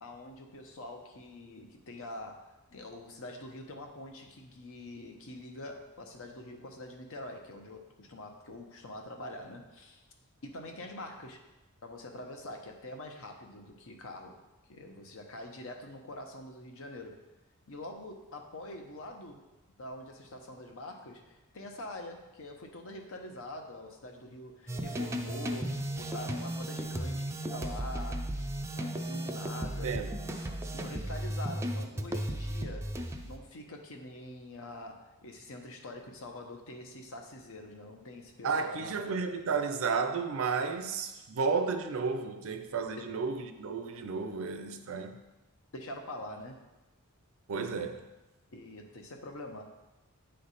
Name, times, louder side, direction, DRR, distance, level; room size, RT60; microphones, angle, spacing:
voice 1, 0.0-10.0 10.4-11.4 11.8-14.4 14.7-17.2 17.7-19.4 19.8-28.3 28.8-30.0 30.7-32.9 33.2-39.2 43.0-43.2 45.7-46.6 48.5-49.6, left 1 dB, 65° left, 0.9 m, -45 dB
sound 1, 24.7-33.4, right 1 dB, 10° right, 0.4 m, -35 dB
voice 2, 29.6-30.2 38.4-45.2 47.5-48.0, right 5 dB, 65° right, 0.6 m, -32 dB
9.0 x 3.3 x 4.1 m
head